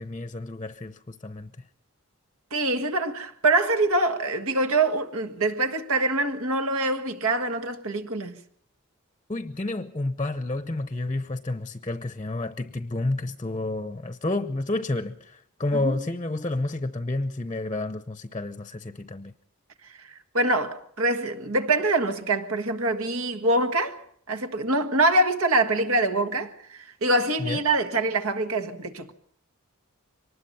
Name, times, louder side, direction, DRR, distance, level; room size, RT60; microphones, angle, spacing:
voice 1, 0.0-1.5 9.3-19.3 27.4-27.6, left 2 dB, 25° left, 0.7 m, -30 dB
voice 2, 2.5-8.4 15.7-16.0 20.3-24.0 24.3-29.1, right 2 dB, 75° right, 1.7 m, -24 dB
24.0 x 19.5 x 5.6 m
head